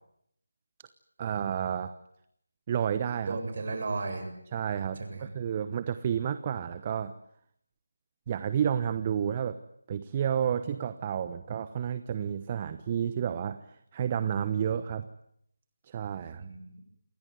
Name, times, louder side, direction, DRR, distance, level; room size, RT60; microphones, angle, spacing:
voice 1, 1.2-1.9 2.7-3.4 4.5-7.1 8.3-9.6 9.9-15.1 15.8-16.4, right 8 dB, 25° right, 13 dB, 1.0 m, -31 dB
voice 2, 3.3-4.3 5.0-5.3 16.4-16.8, right 3 dB, 45° right, 7 dB, 7.6 m, -35 dB
28.0 x 22.0 x 9.5 m, 0.72 s
figure-of-eight pair, 160°, 0 cm